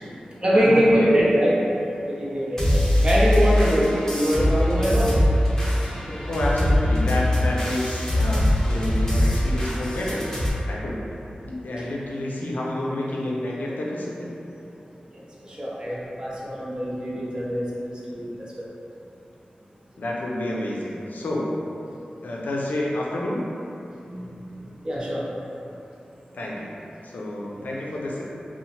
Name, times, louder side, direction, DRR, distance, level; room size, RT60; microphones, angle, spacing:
voice 1, 0.0-5.1 15.0-18.3 18.6-18.7 24.1-25.2 27.5-27.7, equal, 30° right, -7 dB, 0.6 m, -24 dB
voice 2, 0.5-1.1 6.3-11.0 11.4-14.3 20.0-21.6 22.2-23.5 26.3-26.7 27.0-28.2, left 1 dB, 80° left, -4 dB, 0.4 m, -29 dB
sound 1, 2.6-10.5, left 1 dB, 15° left, 0.8 m, -22 dB
2.8 x 2.0 x 2.9 m, 2.8 s
wide cardioid pair, 90°, 3 cm